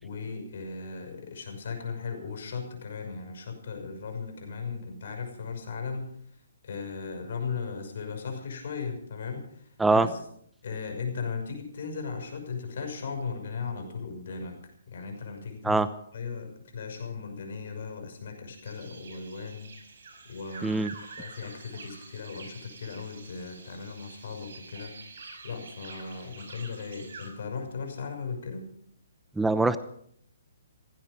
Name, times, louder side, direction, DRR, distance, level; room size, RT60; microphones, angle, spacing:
voice 1, 0.0-6.2 6.6-10.2 10.6-14.6 14.9-15.9 16.1-19.7 20.3-20.8 21.2-25.1 25.4-28.7, left 5 dB, 60° left, 4 dB, 6.2 m, -37 dB
sound 1, 18.6-27.3, right 4 dB, 65° right, 5.8 m, -47 dB
voice 2, 29.4-29.8, right 3 dB, 5° right, 13 dB, 0.7 m, -22 dB
16.5 x 16.0 x 5.2 m, 0.66 s
hypercardioid pair, 145°, 0 cm